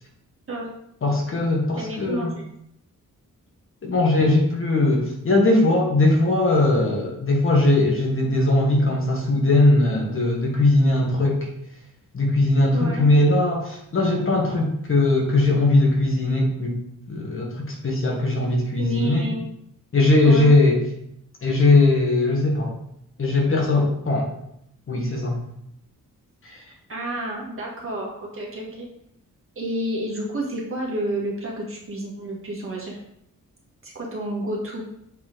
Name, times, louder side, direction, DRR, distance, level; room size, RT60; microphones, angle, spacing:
voice 1, 1.0-2.3 3.8-11.5 12.1-16.8 17.1-19.3 19.9-20.8 21.4-22.7 23.2-24.3 24.9-25.4 26.4-26.6, left 2 dB, 40° left, 0 dB, 1.3 m, -19 dB
voice 2, 1.8-2.4 12.7-13.1 18.8-19.4 20.2-20.5 26.9-28.9 29.5-33.0 33.8-34.8, right 1 dB, 40° right, -2 dB, 1.6 m, -30 dB
7.1 x 4.2 x 3.8 m, 0.75 s
wide cardioid pair, 170°, 33 cm